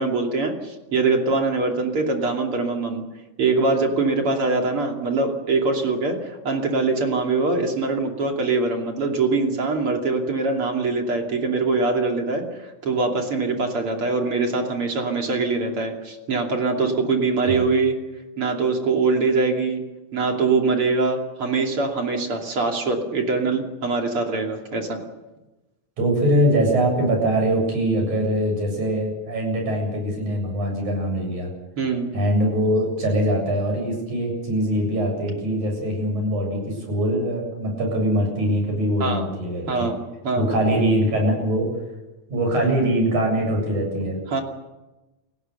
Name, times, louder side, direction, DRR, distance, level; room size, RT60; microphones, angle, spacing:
voice 1, 0.0-3.0 3.4-12.4 12.8-18.0 18.4-19.8 20.1-25.0 31.8-32.1 39.0-39.2 39.7-40.0 40.2-40.5 44.3-44.4, right 3 dB, 45° right, 2 dB, 3.5 m, -23 dB
voice 2, 26.0-31.5 32.1-39.9 40.4-41.7 42.3-44.2, equal, 75° right, 2 dB, 9.2 m, -22 dB
30.0 x 16.0 x 6.8 m, 1.1 s
omnidirectional pair, 3.5 m